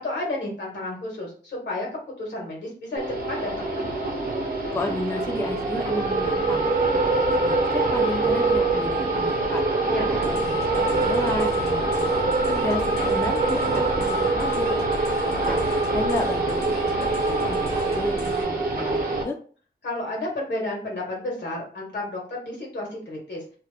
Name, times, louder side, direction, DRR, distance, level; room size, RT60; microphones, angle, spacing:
voice 1, 0.0-1.9 2.2-3.0 3.3-3.8 9.9-10.4 19.8-23.4, left 1 dB, 85° left, -2 dB, 1.4 m, -31 dB
sound 1, 3.0-19.2, right 2 dB, 55° right, 0.7 m, -24 dB
voice 2, 4.7-9.6 10.3-15.6 15.9-19.4, left 2 dB, 15° left, 4 dB, 0.3 m, -33 dB
sound 2, 10.1-18.4, left 1 dB, 65° left, 0.8 m, -39 dB
2.8 x 2.1 x 3.3 m, 0.42 s
wide cardioid pair, 105°, 18 cm